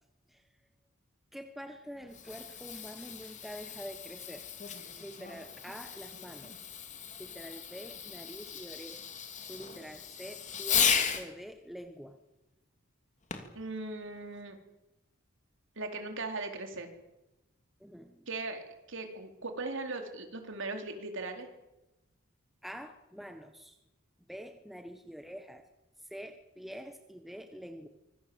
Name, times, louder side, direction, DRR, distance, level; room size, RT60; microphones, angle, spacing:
voice 1, 1.3-4.5 5.0-6.5 7.2-9.1 9.5-12.2 17.8-18.3 22.6-23.8 24.3-25.7 26.0-27.9, equal, ahead, 6 dB, 1.3 m, -46 dB
Fireworks, 1.9-11.3 13.3-13.6 14.3-14.4, left 7 dB, 35° left, 3.0 m, -35 dB
voice 2, 13.5-14.6 15.8-16.9 18.3-18.6 18.9-21.5, right 3 dB, 65° right, 4 dB, 4.2 m, -38 dB
25.5 x 22.5 x 8.0 m, 1.0 s
head